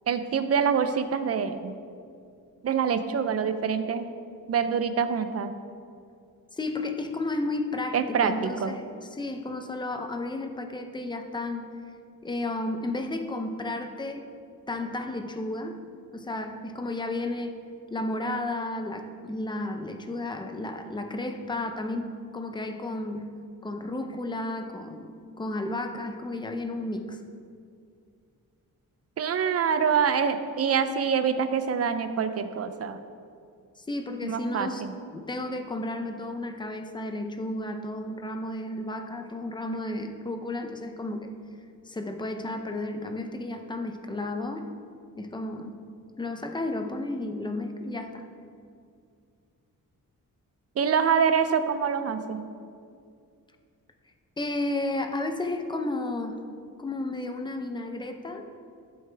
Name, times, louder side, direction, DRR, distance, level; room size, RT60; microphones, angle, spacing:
voice 1, 0.1-1.7 2.6-4.1 4.5-5.5 7.9-8.8 29.2-33.0 34.2-34.9 50.8-52.5, right 6 dB, 45° right, 10 dB, 0.6 m, -25 dB
voice 2, 6.5-8.8 9.1-11.6 12.2-14.3 14.7-15.8 16.1-17.6 17.9-23.3 23.6-27.2 33.8-41.3 41.9-44.7 45.2-45.8 46.2-48.2 54.4-56.4 56.8-58.5, left 2 dB, 15° left, 5 dB, 0.6 m, -33 dB
13.5 x 7.9 x 3.4 m, 2.3 s
wide cardioid pair, 170°, 34 cm